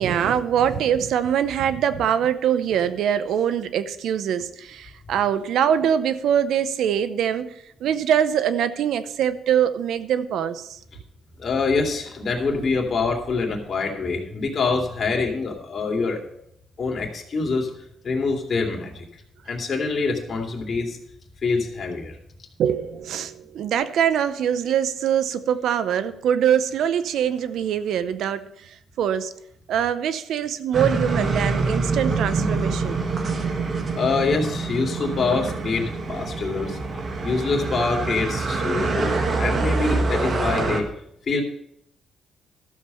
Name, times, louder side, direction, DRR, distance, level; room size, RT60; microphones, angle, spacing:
voice 1, 0.0-7.5 7.8-10.8 22.6-29.3 29.7-33.0, right 9 dB, 75° right, 13 dB, 0.7 m, -23 dB
voice 2, 11.4-16.2 16.8-17.7 18.0-19.0 19.5-21.0 21.4-22.1 34.0-36.8 37.2-40.9 41.3-41.4, left 4 dB, 45° left, 2 dB, 2.5 m, -25 dB
sound 1, 30.7-40.8, right 3 dB, 45° right, 1.6 m, -25 dB
13.0 x 7.4 x 5.5 m, 0.76 s
cardioid pair, 90°, 0 cm